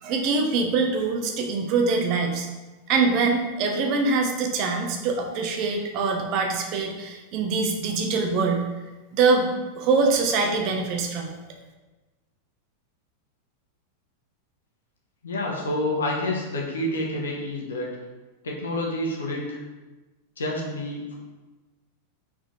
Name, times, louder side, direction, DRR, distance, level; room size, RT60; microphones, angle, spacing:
voice 1, 0.0-2.5 2.9-8.6 9.1-9.5 9.7-11.3, right 4 dB, 40° right, 3 dB, 0.9 m, -24 dB
voice 2, 15.2-17.9 18.4-19.6 20.4-21.2, left 1 dB, 70° left, -2 dB, 1.3 m, -28 dB
4.8 x 4.4 x 4.6 m, 1.2 s
figure-of-eight pair, 90°, 0 cm